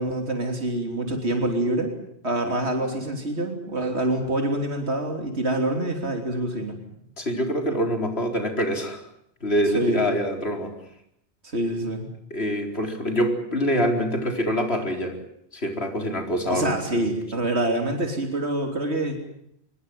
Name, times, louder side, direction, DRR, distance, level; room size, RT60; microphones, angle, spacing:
voice 1, 0.0-2.0 2.2-6.8 9.7-10.0 11.5-12.1 16.5-19.2, right 1 dB, 85° right, 3 dB, 3.7 m, -26 dB
voice 2, 7.2-9.0 9.4-10.7 12.3-15.2 15.5-17.1, equal, 75° left, 4 dB, 4.6 m, -25 dB
24.5 x 22.5 x 7.8 m, 0.73 s
omnidirectional pair, 1.1 m